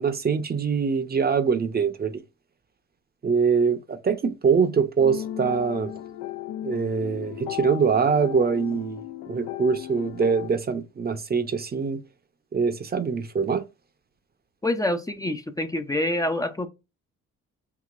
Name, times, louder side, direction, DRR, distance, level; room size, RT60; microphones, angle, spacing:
voice 1, 0.0-2.2 3.2-5.9 6.6-9.0 9.3-12.0 12.5-13.6, right 5 dB, 30° right, 0.7 m, -23 dB
sound 1, 5.0-10.5, left 12 dB, 85° left, 0.6 m, -36 dB
voice 2, 14.6-16.7, left 1 dB, 10° left, 0.5 m, -26 dB
4.8 x 3.1 x 2.5 m
cardioid pair, 90°, 30 cm